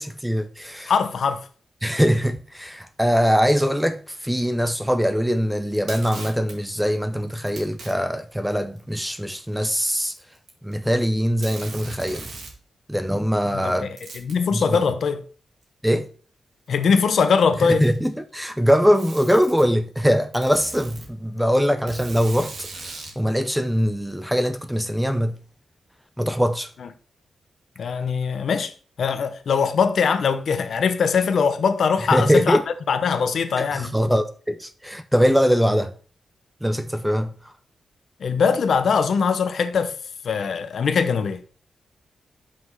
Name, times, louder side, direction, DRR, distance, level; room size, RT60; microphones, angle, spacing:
voice 1, 0.0-0.9 1.8-10.1 10.6-12.3 12.9-13.9 14.5-14.8 15.8-16.1 17.8-25.4 26.2-26.7 32.1-32.6 33.7-35.9 36.6-37.3, equal, 5° right, 0.6 m, -22 dB
voice 2, 0.9-1.5 13.5-15.2 16.7-17.9 26.8-26.9 27.8-28.7 29.0-32.6 32.9-34.0 38.2-40.0 40.2-41.4, left 6 dB, 70° left, 0.8 m, -21 dB
Packing tape duct tape, 5.7-6.6 7.5-7.9 8.8-8.9 9.9-10.7 11.0-11.1 11.4-12.6 14.0-14.4 15.6-15.7 16.7-16.8 17.6-18.2 18.9-19.7 20.3-21.1 21.9-23.2, right 3 dB, 70° right, 2.3 m, -39 dB
6.0 x 5.0 x 5.4 m
cardioid pair, 100°, 0 cm